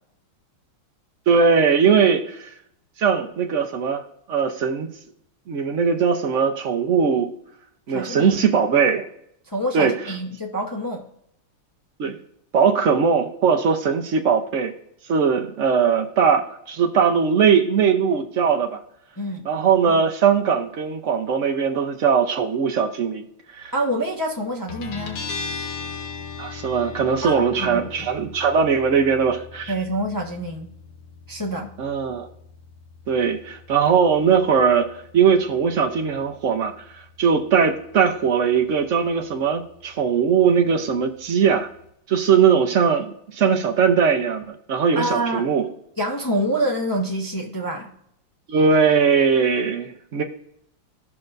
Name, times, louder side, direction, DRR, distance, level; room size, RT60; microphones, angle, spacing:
voice 1, 1.3-2.5 3.0-4.0 4.3-4.9 5.5-7.3 7.9-9.1 9.7-9.9 12.0-12.2 12.5-14.7 15.1-18.8 19.4-23.2 23.5-23.7 26.4-29.7 31.8-32.3 33.1-36.7 37.2-41.7 42.1-45.7 48.5-50.2, right 6 dB, 80° right, 4 dB, 0.6 m, -20 dB
voice 2, 7.9-8.4 9.5-11.0 19.2-19.5 23.7-25.2 27.2-28.1 29.7-30.7 31.3-31.7 44.9-45.4 46.0-48.0, right 1 dB, 25° left, -1 dB, 0.4 m, -26 dB
Guitar, 24.7-41.9, left 5 dB, 80° left, 2.3 m, -40 dB
16.0 x 5.9 x 2.6 m, 0.73 s
omnidirectional pair, 2.4 m